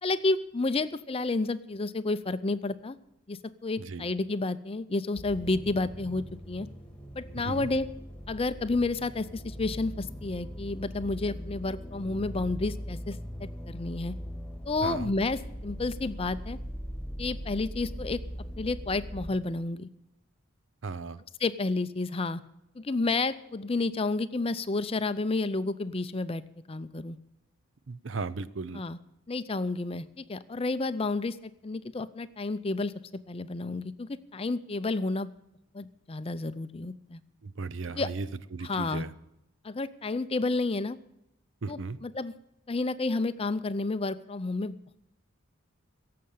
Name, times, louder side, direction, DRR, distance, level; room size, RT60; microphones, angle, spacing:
voice 1, 0.0-3.0 3.3-6.7 7.1-7.9 8.3-14.2 14.7-16.6 17.2-18.2 18.6-19.9 21.4-22.4 22.8-26.4 26.7-27.2 28.7-29.0 29.3-32.9 33.3-35.3 35.7-37.2 37.9-38.1 38.6-39.0 39.6-41.0 41.7-42.3 42.7-45.0, left 3 dB, 25° left, 13 dB, 0.5 m, -30 dB
voice 2, 3.8-4.1 7.4-7.7 14.8-15.1 20.8-21.2 27.9-28.8 37.4-38.3 38.5-39.1 41.6-42.0, right 4 dB, 60° right, 16 dB, 0.6 m, -36 dB
sound 1, 5.1-19.3, equal, 5° left, 1.7 m, -40 dB
17.0 x 7.7 x 8.5 m, 0.83 s
head